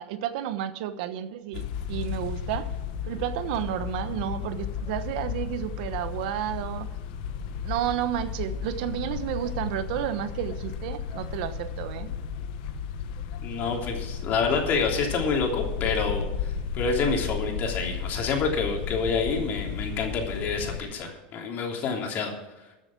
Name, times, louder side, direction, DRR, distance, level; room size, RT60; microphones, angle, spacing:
voice 1, 0.0-2.7 3.0-6.9 7.6-12.2, right 11 dB, 70° right, 11 dB, 1.1 m, -31 dB
sound 1, 1.5-20.8, left 7 dB, 70° left, 1.3 m, -34 dB
voice 2, 13.4-22.3, left 4 dB, 40° left, 1 dB, 3.1 m, -28 dB
14.0 x 7.4 x 6.0 m, 1.1 s
supercardioid pair, 140°, 5 cm